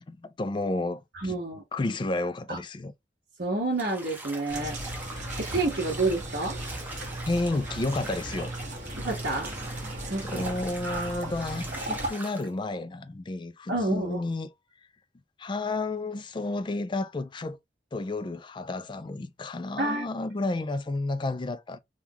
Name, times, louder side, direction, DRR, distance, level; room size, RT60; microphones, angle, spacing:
voice 1, 0.0-1.4 1.7-2.9 7.3-8.5 10.2-14.5 15.4-17.6 17.9-21.8, left 2 dB, 25° left, 0.4 m, -31 dB
voice 2, 1.1-1.6 2.5-2.6 3.4-4.8 5.4-6.6 9.0-9.5 10.0-10.4 10.8-11.2 13.7-14.2 19.8-20.0, right 2 dB, 60° right, 1.3 m, -29 dB
Bathtub (filling or washing), 3.7-12.5, right 2 dB, 10° right, 0.8 m, -42 dB
sound 1, 4.5-12.1, right 1 dB, 45° right, 1.3 m, -36 dB
3.6 x 2.3 x 2.8 m
head